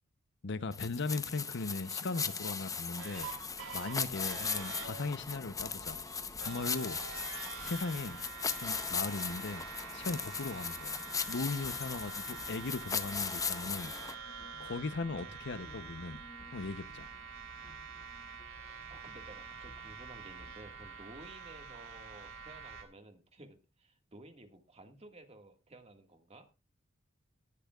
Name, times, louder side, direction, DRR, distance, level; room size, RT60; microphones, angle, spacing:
voice 1, 0.4-3.3 3.7-6.0 6.4-7.0 7.6-8.3 8.6-9.7 9.9-11.0 11.3-13.9 14.6-16.2 16.5-17.1, left 3 dB, 60° left, 0.7 m, -38 dB
sound 1, 0.7-14.1, left 5 dB, 15° left, 0.8 m, -38 dB
sound 2, 3.0-22.8, right 6 dB, 80° right, 2.7 m, -47 dB
sound 3, 5.6-8.3 11.4-20.5, left 1 dB, 40° left, 1.1 m, -59 dB
voice 2, 18.9-26.5, right 2 dB, 30° right, 1.8 m, -54 dB
18.5 x 10.0 x 2.4 m
head